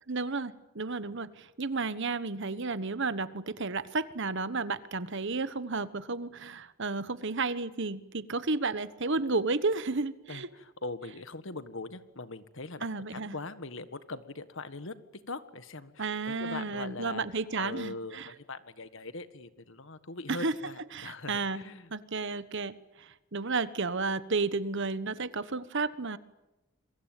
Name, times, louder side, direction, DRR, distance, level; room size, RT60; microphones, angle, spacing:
voice 1, 0.1-10.5 12.8-13.4 16.0-18.3 20.3-20.5 20.9-21.6 21.9-26.2, right 3 dB, 55° right, 15 dB, 1.2 m, -32 dB
voice 2, 10.3-14.9 15.3-17.2 17.6-21.9, left 3 dB, 60° left, 12 dB, 1.6 m, -41 dB
27.5 x 23.5 x 9.1 m, 0.99 s
head